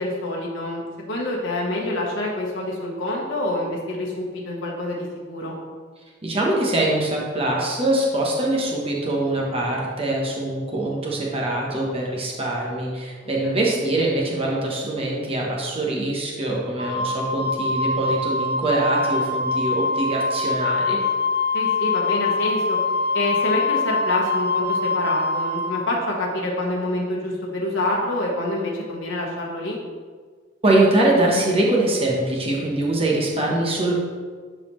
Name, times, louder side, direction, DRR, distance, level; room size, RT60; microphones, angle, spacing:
voice 1, 0.0-5.6 13.4-13.6 21.5-22.8 23.1-29.8, left 1 dB, 80° left, -3 dB, 1.2 m, -27 dB
voice 2, 6.2-21.0 30.6-34.0, right 1 dB, 30° right, -2 dB, 1.1 m, -23 dB
Wind instrument woodwind instrument, 16.8-25.8, left 3 dB, 55° right, 0.7 m, -24 dB
10.5 x 4.1 x 3.1 m, 1.5 s
head